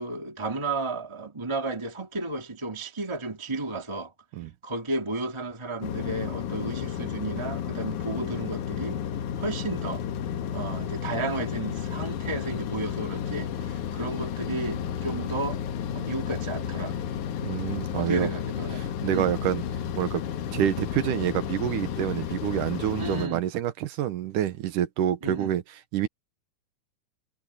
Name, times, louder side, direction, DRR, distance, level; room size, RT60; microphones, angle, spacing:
voice 1, 0.0-4.1 4.6-9.0 9.4-10.1 10.5-15.6 15.9-17.1 17.9-18.8 19.1-19.3 23.0-23.5 25.2-25.5, right 2 dB, 10° right, 1.7 m, -33 dB
sound 1, 5.8-23.3, left 8 dB, 70° left, 2.5 m, -32 dB
voice 2, 17.4-18.3 18.8-19.6 20.0-20.2 20.5-25.6 25.9-26.1, right 11 dB, 70° right, 2.5 m, -27 dB
omnidirectional pair, 4.0 m